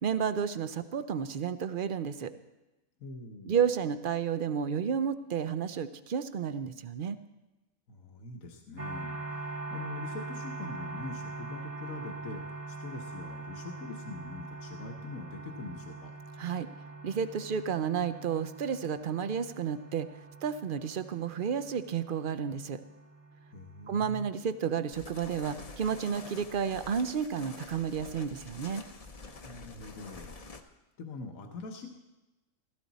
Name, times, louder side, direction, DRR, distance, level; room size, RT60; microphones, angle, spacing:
voice 1, 0.0-2.3 3.5-7.2 16.4-16.7 17.0-20.1 20.4-22.8 23.9-28.8, right 7 dB, 55° right, 12 dB, 0.6 m, -31 dB
voice 2, 3.0-3.6 7.9-16.2 23.5-24.3 29.4-31.9, left 3 dB, 75° left, 3 dB, 1.5 m, -44 dB
sound 1, 8.8-26.5, right 3 dB, 30° right, 0.9 m, -43 dB
sound 2, 24.9-30.6, left 3 dB, 35° left, 0.7 m, -47 dB
15.5 x 14.0 x 4.1 m, 1.0 s
omnidirectional pair, 1.4 m